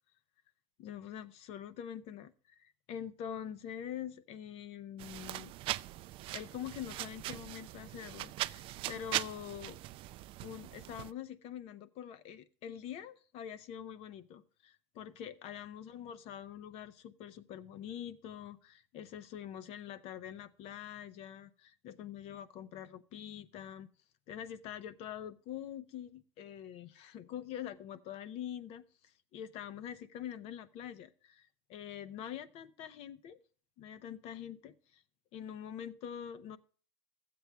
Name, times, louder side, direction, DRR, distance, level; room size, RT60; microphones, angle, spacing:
voice 1, 0.8-2.3 2.6-5.5 6.3-9.8 10.4-23.9 24.3-33.4 33.8-35.0 35.3-36.6, left 9 dB, 45° left, 0.8 m, -45 dB
sound 1, 5.0-11.1, right 17 dB, 40° right, 0.4 m, -40 dB
12.5 x 7.8 x 3.3 m
supercardioid pair, 130°, 14 cm